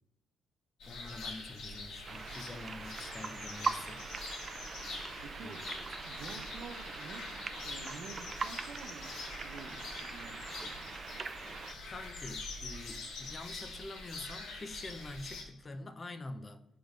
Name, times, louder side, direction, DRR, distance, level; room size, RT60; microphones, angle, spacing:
sound 1, 0.8-15.4, left 3 dB, 85° left, 1.5 m, -45 dB
voice 1, 0.9-4.3 5.4-5.9 11.9-16.6, left 2 dB, 30° left, 0.5 m, -46 dB
sound 2, 2.1-11.7, right 5 dB, 40° right, 0.3 m, -42 dB
voice 2, 5.2-5.6 6.1-10.5, right 5 dB, 70° right, 0.8 m, -49 dB
6.0 x 3.5 x 5.1 m
cardioid pair, 95°, 0 cm